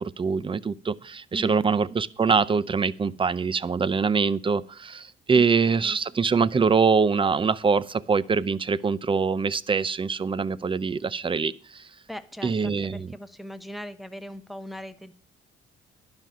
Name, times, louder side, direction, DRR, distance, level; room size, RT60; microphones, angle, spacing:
voice 1, 0.0-11.9 12.4-13.1, right 5 dB, 25° right, 20 dB, 0.5 m, -24 dB
voice 2, 1.3-1.7 5.3-6.0 12.1-15.1, equal, ahead, 9 dB, 0.9 m, -39 dB
11.5 x 5.2 x 7.6 m, 0.44 s
cardioid pair, 90°, 20 cm